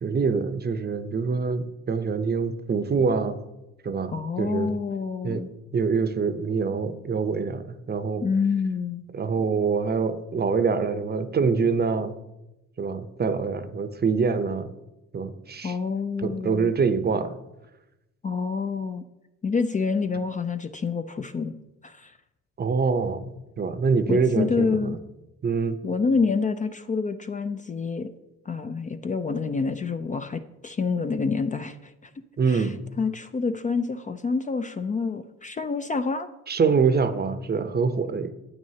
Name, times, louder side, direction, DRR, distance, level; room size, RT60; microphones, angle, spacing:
voice 1, 0.0-3.4 3.8-4.7 5.2-5.4 5.7-8.2 9.1-12.1 12.8-14.7 15.1-15.7 16.2-17.3 22.6-25.0 25.4-25.8 32.4-32.7 36.5-38.3, right 5 dB, 35° right, 10 dB, 0.7 m, -25 dB
voice 2, 4.1-5.5 8.2-9.0 15.6-16.7 18.2-19.0 19.4-21.5 21.8-22.1 24.1-25.0 25.8-28.1 28.5-31.9 32.5-32.7 33.0-36.3, left 4 dB, 25° left, 9 dB, 0.4 m, -27 dB
9.5 x 8.3 x 2.8 m, 0.94 s
cardioid pair, 90°, 30 cm